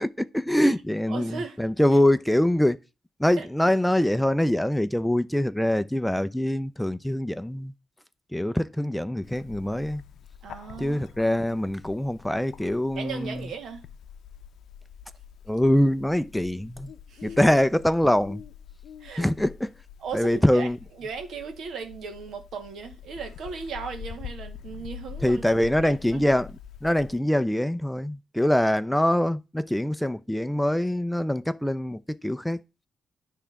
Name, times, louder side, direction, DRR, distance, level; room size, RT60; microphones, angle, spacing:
voice 1, 0.0-2.8 3.2-7.7 8.3-10.0 10.8-13.5 15.5-16.9 17.2-18.4 19.2-19.7 20.1-20.8 25.2-32.6, left 1 dB, 5° left, 0.5 m, -24 dB
voice 2, 1.1-1.6 3.4-3.5 10.4-11.4 13.0-13.8 17.1-17.5 19.0-19.3 20.0-20.7 21.0-25.4 25.8-26.2, right 5 dB, 80° right, 1.7 m, -37 dB
Bird, 9.2-27.2, left 8 dB, 85° left, 0.6 m, -45 dB
10.0 x 3.7 x 5.7 m
cardioid pair, 80°, 0 cm